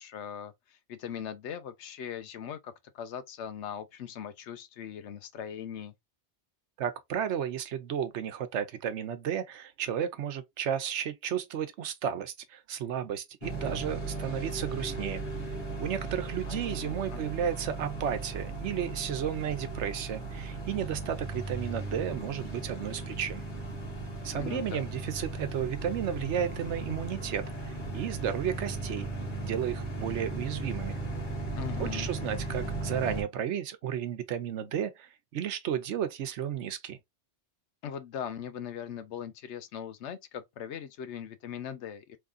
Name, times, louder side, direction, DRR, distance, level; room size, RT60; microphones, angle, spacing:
voice 1, 0.0-5.9 16.5-17.2 24.3-24.9 31.6-32.1 37.8-42.2, left 8 dB, 85° left, 1.0 m, -40 dB
voice 2, 6.8-15.2 15.8-23.4 24.2-29.1 29.4-31.0 31.8-37.0, right 9 dB, 85° right, 1.0 m, -33 dB
sound 1, 13.4-33.2, right 2 dB, 45° left, 1.8 m, -37 dB
3.6 x 3.2 x 2.4 m
omnidirectional pair, 1.2 m